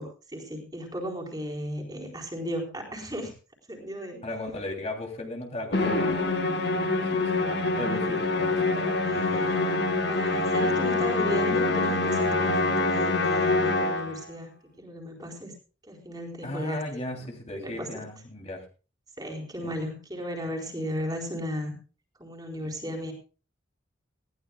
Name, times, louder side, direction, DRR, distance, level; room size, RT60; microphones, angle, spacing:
voice 1, 0.0-3.3 3.7-4.2 7.4-7.7 8.6-9.3 10.1-14.5 14.8-15.5 15.8-16.8 17.1-17.3 17.6-18.0 19.2-21.8 22.2-23.1, equal, 20° right, 1 dB, 4.2 m, -35 dB
voice 2, 4.2-6.2 7.0-7.3 7.8-9.5 16.4-18.6 19.6-19.8, left 1 dB, 35° left, 2 dB, 3.1 m, -36 dB
Musical instrument, 5.7-14.2, left 2 dB, 60° left, 2.0 m, -25 dB
19.5 x 16.0 x 2.3 m, 0.35 s
head